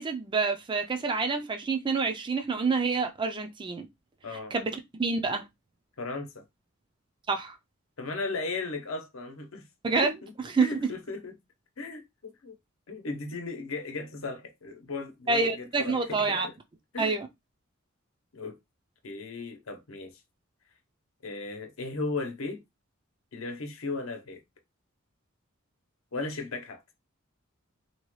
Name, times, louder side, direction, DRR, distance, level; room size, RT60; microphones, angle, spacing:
voice 1, 0.0-3.9 4.5-5.5 7.3-7.6 9.8-10.9 15.3-16.5 17.0-17.3, right 4 dB, 25° right, 0.4 m, -28 dB
voice 2, 4.2-4.5 6.0-6.4 8.0-9.7 10.2-10.3 10.6-11.3 11.8-12.5 12.9-16.5 16.9-17.2 18.3-18.6 19.0-20.1 21.2-22.6 23.3-24.4 26.1-26.8, left 3 dB, 85° left, 0.8 m, -36 dB
2.9 x 2.2 x 3.0 m
head